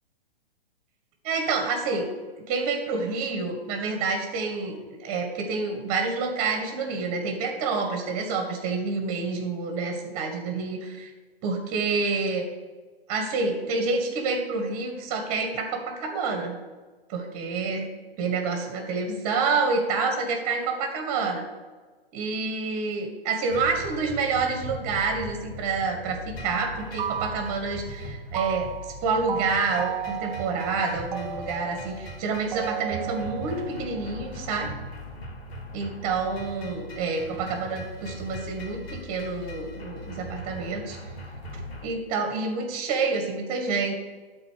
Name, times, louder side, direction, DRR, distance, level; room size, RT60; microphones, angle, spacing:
voice 1, 1.2-2.1 2.5-11.1 11.4-12.4 13.1-16.6 17.1-17.9 18.2-21.4 22.1-34.7 35.7-41.0 41.8-44.0, right 4 dB, 25° right, 4 dB, 1.8 m, -28 dB
sound 1, 23.5-41.9, equal, 70° left, 3.0 m, -40 dB
sound 2, 26.8-27.9 28.3-34.4, right 10 dB, 50° right, 0.6 m, -35 dB
12.5 x 4.4 x 6.6 m, 1.4 s
hypercardioid pair, 150°, 31 cm